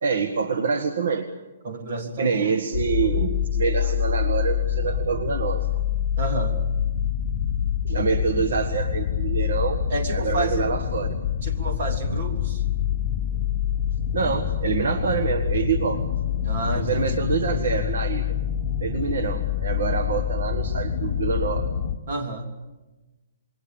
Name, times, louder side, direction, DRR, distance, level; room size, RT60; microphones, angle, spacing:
voice 1, 0.0-1.3 2.2-5.7 7.8-9.8 10.1-11.1 14.1-16.0 16.8-18.3 18.8-21.7, right 5 dB, 65° right, 7 dB, 1.6 m, -26 dB
voice 2, 1.6-2.4 6.2-6.6 9.9-10.7 11.4-12.6 16.4-17.2 22.1-22.5, right 2 dB, 40° right, 4 dB, 3.2 m, -30 dB
Atmospheric Rumble Drone, 2.7-22.0, left 9 dB, 30° left, 1.1 m, -26 dB
27.5 x 22.0 x 7.2 m, 1.1 s
hypercardioid pair, 180°, 0 cm